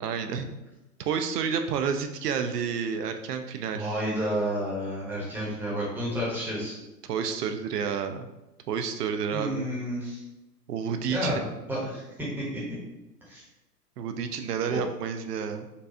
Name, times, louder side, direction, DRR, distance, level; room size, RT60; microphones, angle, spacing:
voice 1, 0.0-0.5 1.0-4.0 7.1-8.3 8.7-9.7 10.7-11.4 14.0-15.7, right 6 dB, 70° right, 7 dB, 0.5 m, -30 dB
voice 2, 3.7-6.7 9.3-10.2 11.0-12.6 13.3-13.4 14.7-14.8, equal, 5° right, -7 dB, 0.7 m, -31 dB
4.0 x 2.2 x 2.5 m, 0.98 s
figure-of-eight pair, 115°, 50 cm